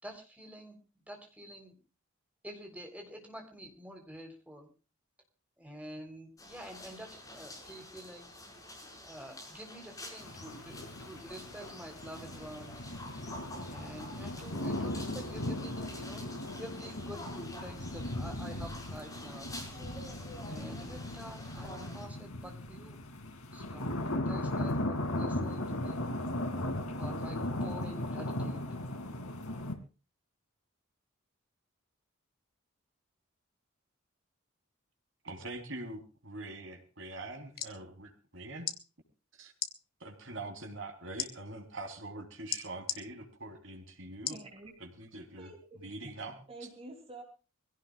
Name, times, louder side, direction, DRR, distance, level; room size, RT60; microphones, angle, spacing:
voice 1, 0.0-0.8 1.1-1.8 2.4-4.7 5.6-8.3 9.0-12.9 13.7-16.3 16.6-17.3 17.6-19.5 20.4-23.0 23.5-24.0 24.3-26.1 27.0-28.7 45.8-45.9, equal, 5° right, 3 dB, 3.8 m, -48 dB
sound 1, 6.4-22.1, left 1 dB, 15° left, 5.6 m, -49 dB
sound 2, 10.2-29.7, left 1 dB, 90° left, 2.7 m, -37 dB
voice 2, 35.2-38.7 39.4-39.5 40.0-44.4 44.8-45.5 45.8-46.7, right 2 dB, 60° right, 4 dB, 3.9 m, -44 dB
sound 3, 37.3-37.8 38.6-38.8 39.5-39.7 41.2-41.3 42.5-43.0 44.2-44.5 45.0-45.1, left 10 dB, 45° left, 1.7 m, -35 dB
voice 3, 44.3-44.7 45.4-45.6 46.0-46.2 46.5-47.2, right 2 dB, 25° right, 3 dB, 3.2 m, -47 dB
24.5 x 17.0 x 2.4 m, 0.33 s
head